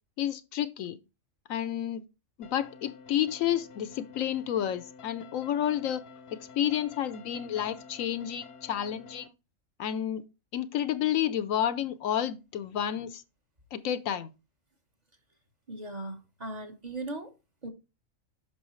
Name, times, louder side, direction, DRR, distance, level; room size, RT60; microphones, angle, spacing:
voice 1, 0.2-1.0 1.5-2.0 2.4-6.0 6.4-9.3 9.8-10.2 10.5-13.2 13.7-14.3, left 10 dB, 80° left, 1.1 m, -30 dB
sound 1, 2.4-9.3, left 5 dB, 55° left, 0.8 m, -50 dB
voice 2, 15.7-17.3 17.6-17.7, right 2 dB, 35° right, 1.1 m, -38 dB
8.7 x 6.2 x 3.1 m
omnidirectional pair, 1.4 m